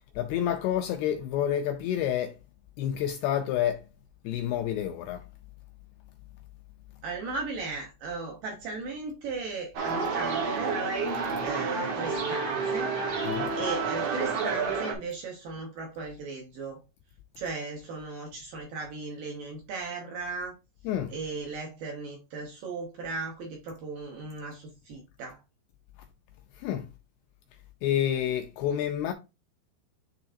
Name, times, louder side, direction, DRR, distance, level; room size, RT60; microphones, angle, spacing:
voice 1, 0.2-2.3 2.8-3.8 4.2-5.2 13.2-13.5 20.8-21.1 26.6-26.9 27.8-29.1, left 10 dB, 85° left, 2.3 m, -29 dB
voice 2, 7.0-10.8 11.4-12.9 13.6-16.8 17.4-20.6 21.1-25.4, right 4 dB, 70° right, 2.2 m, -37 dB
sound 1, 9.7-14.9, right 4 dB, 85° right, 1.4 m, -29 dB
10.0 x 3.6 x 2.6 m
omnidirectional pair, 5.1 m